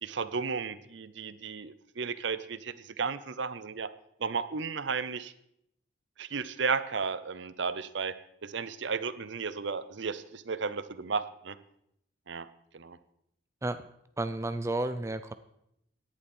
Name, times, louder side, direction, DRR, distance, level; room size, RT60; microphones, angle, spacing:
voice 1, 0.0-3.9 4.2-5.3 6.2-8.2 8.4-11.6 12.3-12.5 12.7-13.0, right 5 dB, 65° right, 14 dB, 0.7 m, -34 dB
voice 2, 14.2-15.3, right 2 dB, 15° right, 11 dB, 0.4 m, -32 dB
17.0 x 11.0 x 4.4 m, 0.76 s
head